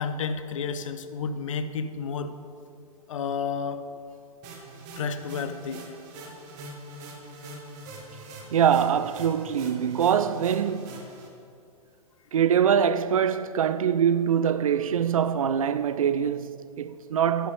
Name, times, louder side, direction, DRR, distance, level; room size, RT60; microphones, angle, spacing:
voice 1, 0.0-2.3 3.1-3.8 5.0-5.8, left 5 dB, 55° left, 0.7 m, -31 dB
sound 1, 4.4-11.3, right 2 dB, 35° right, 1.6 m, -43 dB
voice 2, 8.5-11.0 12.3-17.5, right 8 dB, 65° right, 0.4 m, -24 dB
12.0 x 10.0 x 3.5 m
figure-of-eight pair, 105°, 19 cm